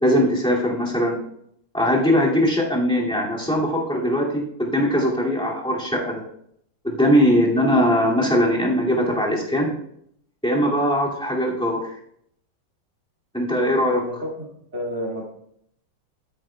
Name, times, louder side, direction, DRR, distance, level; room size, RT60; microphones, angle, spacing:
voice 1, 0.0-1.2 1.7-6.2 6.8-9.7 10.4-11.9 13.3-14.0, equal, ahead, -5 dB, 2.2 m, -20 dB
voice 2, 14.0-14.3 14.7-15.3, equal, 30° right, -3 dB, 2.6 m, -30 dB
13.5 x 9.4 x 2.3 m, 0.70 s
omnidirectional pair, 2.3 m